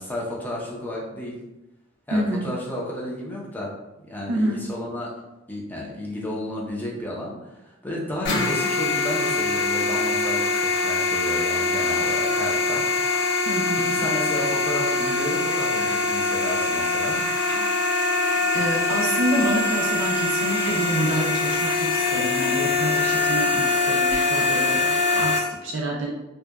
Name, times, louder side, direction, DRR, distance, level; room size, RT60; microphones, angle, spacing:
voice 1, 0.0-1.4 2.1-3.7 4.1-5.1 5.5-12.8 13.7-17.2, left 1 dB, 10° left, -4 dB, 0.5 m, -32 dB
voice 2, 2.1-2.5 4.3-4.6 13.5-14.0 18.5-26.1, right 1 dB, 75° right, -2 dB, 0.4 m, -27 dB
sound 1, 8.2-25.4, left 3 dB, 65° left, 0.5 m, -23 dB
2.7 x 2.2 x 2.2 m, 0.98 s
head